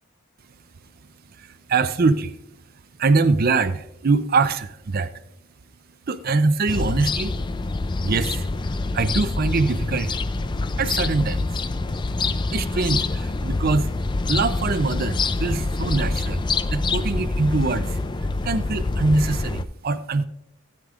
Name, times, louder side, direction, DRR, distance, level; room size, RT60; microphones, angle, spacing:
voice 1, 1.4-2.3 3.0-5.1 6.1-7.3 8.0-8.5 8.9-10.2 10.8-11.5 12.5-13.9 14.3-16.4 16.7-18.0 18.4-20.3, right 3 dB, 45° right, 11 dB, 0.5 m, -23 dB
sound 1, 6.7-19.6, left 3 dB, 20° left, 0.4 m, -26 dB
16.0 x 9.7 x 2.5 m, 0.79 s
head